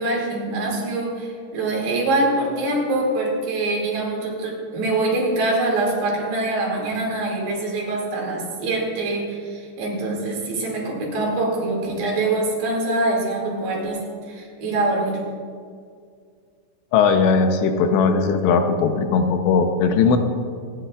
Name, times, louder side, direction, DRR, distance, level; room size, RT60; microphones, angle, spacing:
voice 1, 0.0-15.3, right 2 dB, 80° right, -3 dB, 4.8 m, -24 dB
voice 2, 16.9-20.2, left 5 dB, 90° left, 6 dB, 3.1 m, -18 dB
27.0 x 10.0 x 2.5 m, 2.1 s
omnidirectional pair, 4.9 m